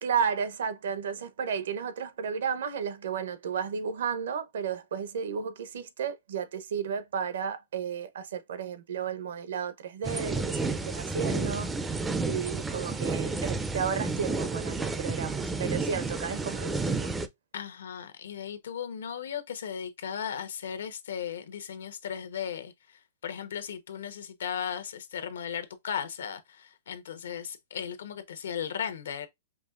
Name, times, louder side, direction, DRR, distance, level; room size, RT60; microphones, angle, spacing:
voice 1, 0.0-11.9 12.2-17.1, right 7 dB, 75° right, 0.7 m, -33 dB
sound 1, 10.0-17.3, right 3 dB, 10° right, 0.3 m, -31 dB
voice 2, 17.5-22.7 23.2-29.3, left 8 dB, 85° left, 0.9 m, -36 dB
5.1 x 2.8 x 2.4 m
hypercardioid pair, 160°, 0 cm